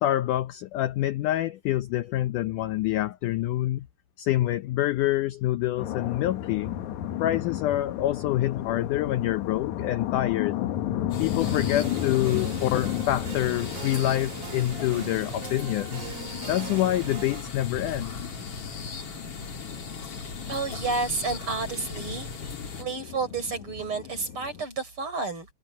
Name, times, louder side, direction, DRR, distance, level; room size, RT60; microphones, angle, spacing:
voice 1, 0.0-3.9 4.2-6.7 7.2-10.7 11.2-16.1 16.5-18.1, left 14 dB, 85° left, 1.8 m, -26 dB
sound 1, 5.8-24.6, left 12 dB, 65° left, 2.0 m, -34 dB
sound 2, 11.1-22.8, left 4 dB, 40° left, 3.4 m, -38 dB
sound 3, 11.4-17.4, right 9 dB, 70° right, 3.6 m, -41 dB
voice 2, 20.5-22.3 22.8-25.5, right 4 dB, 35° right, 5.8 m, -30 dB
omnidirectional pair, 4.5 m